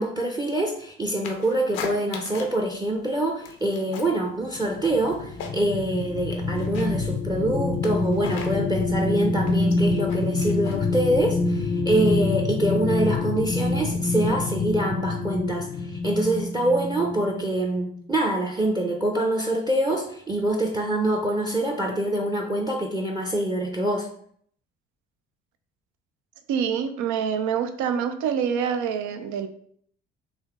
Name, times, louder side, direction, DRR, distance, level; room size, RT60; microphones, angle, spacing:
voice 1, 0.0-24.1, right 1 dB, 15° right, 2 dB, 0.6 m, -25 dB
sound 1, 1.2-2.6 2.9-4.2 4.5-5.9 6.2-11.6, left 6 dB, 80° left, 0.6 m, -39 dB
sound 2, 4.6-17.5 18.0-18.1, left 3 dB, 30° left, 0.4 m, -26 dB
voice 2, 26.5-29.5, right 7 dB, 70° right, 9 dB, 0.5 m, -26 dB
3.4 x 2.7 x 3.6 m, 0.62 s
hypercardioid pair, 55°, 31 cm